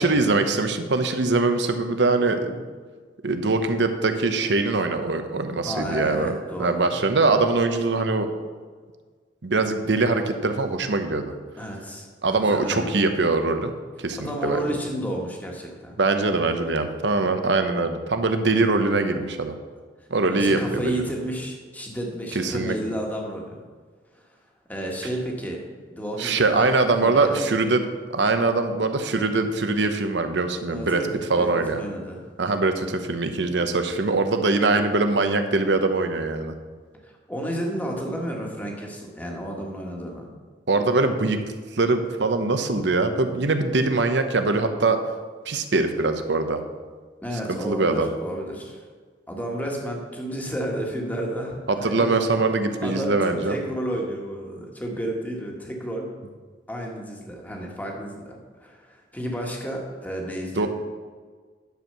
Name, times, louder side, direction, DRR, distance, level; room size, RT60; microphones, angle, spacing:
voice 1, 0.0-2.6 3.2-8.3 9.4-11.3 12.2-13.7 14.0-14.6 16.0-19.6 20.1-20.9 22.3-22.7 26.2-27.8 28.1-31.0 31.3-31.8 32.4-36.5 40.7-41.4 41.7-45.0 45.5-46.6 47.5-48.1 51.8-53.6 60.6-60.7, right 3 dB, 75° right, 7 dB, 0.9 m, -22 dB
voice 2, 5.6-7.0 11.6-12.9 14.2-16.0 20.3-23.6 24.7-25.6 25.9-27.5 30.7-31.1 31.3-32.2 37.0-40.3 47.2-48.8 49.3-52.1 52.8-56.1 56.7-60.7, equal, 10° left, -1 dB, 1.5 m, -31 dB
10.5 x 4.6 x 6.8 m, 1.5 s
head